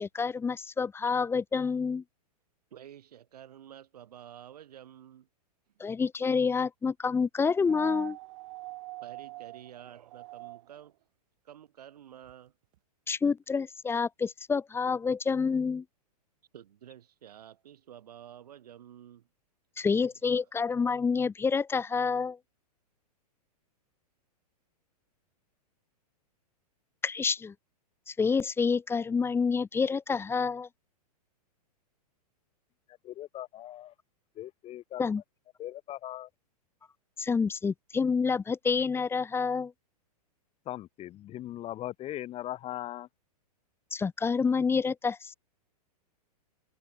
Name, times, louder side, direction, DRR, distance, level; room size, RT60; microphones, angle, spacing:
voice 1, 0.0-2.0 5.8-8.2 13.1-15.8 19.8-22.4 27.0-27.5 28.1-30.7 35.0-35.2 37.2-39.7 43.9-45.3, left 5 dB, 10° left, 1.0 m, -28 dB
voice 2, 2.7-5.3 9.0-11.0 11.4-12.5 16.5-19.3 19.9-20.1, right 10 dB, 75° right, 6.0 m, -50 dB
sound 1, 7.6-10.9 12.3-12.4, right 20 dB, 55° right, 4.7 m, -43 dB
voice 3, 33.0-33.9 34.4-35.0 35.6-36.3 40.7-43.1, left 13 dB, 30° left, 4.1 m, -39 dB
hypercardioid pair, 125°, 20 cm